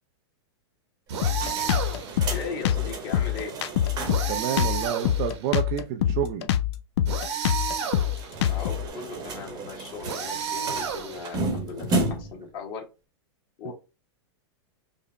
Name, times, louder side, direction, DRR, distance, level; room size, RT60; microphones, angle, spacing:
sound 1, 1.1-4.4 4.7-4.8 5.0-5.1 7.9-12.5, right 2 dB, 25° right, 1.0 m, -33 dB
sound 2, 1.1-2.2 4.1-5.5 7.1-8.3 10.0-11.5, right 6 dB, 75° right, 1.3 m, -31 dB
Drum kit, 1.2-8.9, left 11 dB, 70° left, 0.5 m, -25 dB
voice 1, 2.3-3.5 8.5-12.8 13.6-13.7, left 5 dB, 35° left, 1.4 m, -38 dB
voice 2, 4.3-6.5 13.7-13.8, right 9 dB, 45° right, 0.5 m, -29 dB
5.0 x 2.0 x 3.1 m
supercardioid pair, 145°, 15 cm